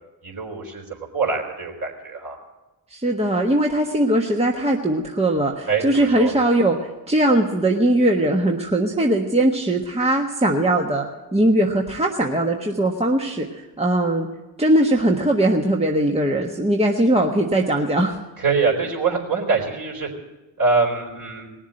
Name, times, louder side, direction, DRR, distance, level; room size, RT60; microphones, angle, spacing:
voice 1, 0.2-2.4 5.7-6.3 18.4-20.1 20.6-21.5, right 4 dB, 40° right, 1 dB, 4.4 m, -24 dB
voice 2, 2.9-11.0 11.3-14.3 14.6-18.2, right 1 dB, 15° right, 1 dB, 1.4 m, -20 dB
19.0 x 7.3 x 8.9 m, 1.1 s
hypercardioid pair, 60°, 49 cm